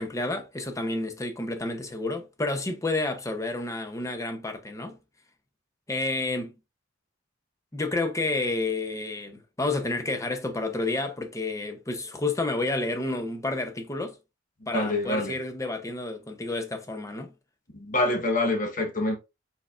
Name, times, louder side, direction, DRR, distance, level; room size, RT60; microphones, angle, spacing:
voice 1, 0.0-5.0 5.9-6.5 7.7-14.2 14.7-17.3, left 2 dB, 15° left, 0.6 m, -30 dB
voice 2, 14.6-15.3 17.7-19.2, left 2 dB, 40° left, 1.0 m, -26 dB
4.5 x 4.2 x 2.4 m
head